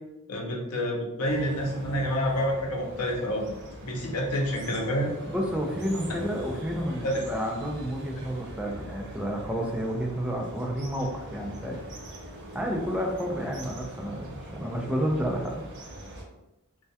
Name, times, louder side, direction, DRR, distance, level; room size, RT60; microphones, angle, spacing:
voice 1, 0.3-3.5 3.8-5.1 7.0-7.1, equal, 85° left, -1 dB, 0.6 m, -28 dB
sound 1, 1.2-16.2, right 1 dB, 55° right, 0.5 m, -42 dB
voice 2, 5.3-11.8 12.5-15.6, equal, 5° right, 0 dB, 0.3 m, -30 dB
2.2 x 2.1 x 2.7 m, 0.92 s
head